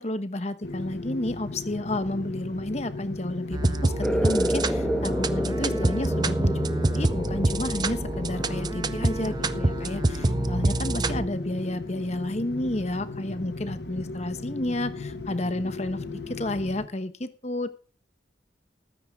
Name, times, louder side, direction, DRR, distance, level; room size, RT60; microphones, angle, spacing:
voice 1, 0.0-6.6 6.9-17.7, left 1 dB, 35° left, 11 dB, 1.1 m, -31 dB
sound 1, 0.6-16.9, left 3 dB, 60° left, 1.3 m, -36 dB
sound 2, 3.5-11.3, right 2 dB, 20° right, 0.5 m, -26 dB
sound 3, 4.0-11.2, equal, 5° left, 1.1 m, -31 dB
18.0 x 9.8 x 3.7 m, 0.38 s
head